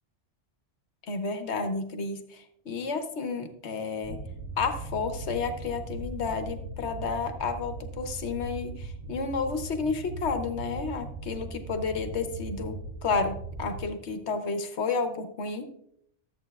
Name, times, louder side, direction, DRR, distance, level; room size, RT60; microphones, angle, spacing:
voice 1, 1.1-4.2 4.6-15.7, left 4 dB, 70° left, 7 dB, 1.2 m, -31 dB
sound 1, 4.0-13.8, right 2 dB, 40° right, 1.8 m, -39 dB
13.5 x 8.1 x 2.3 m, 0.71 s
omnidirectional pair, 1.2 m